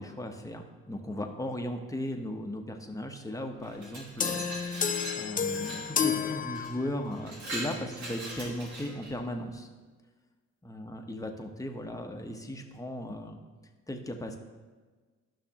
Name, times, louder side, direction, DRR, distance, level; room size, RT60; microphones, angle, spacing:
voice 1, 0.0-4.8 5.1-9.7 10.6-13.4 13.9-14.4, left 1 dB, 10° left, 3 dB, 1.0 m, -37 dB
Glass, 3.6-5.9 6.5-6.7 7.1-9.1, right 1 dB, 70° right, 2.8 m, -40 dB
sound 1, 4.2-7.2, left 7 dB, 30° left, 0.4 m, -31 dB
13.0 x 5.9 x 2.9 m, 1.4 s
cardioid pair, 90°, 30 cm